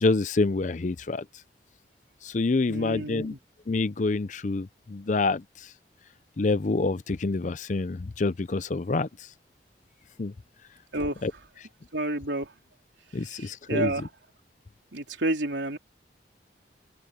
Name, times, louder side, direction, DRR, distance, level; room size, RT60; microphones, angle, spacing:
voice 1, 0.0-1.3 2.2-3.3 3.7-5.7 6.4-9.1 10.2-10.3 11.2-11.3 13.1-14.1, left 3 dB, 45° left, 0.5 m, -27 dB
voice 2, 2.7-3.4 10.9-11.2 11.9-12.5 13.2-14.1 14.9-15.8, right 2 dB, 85° right, 3.5 m, -30 dB
open air
head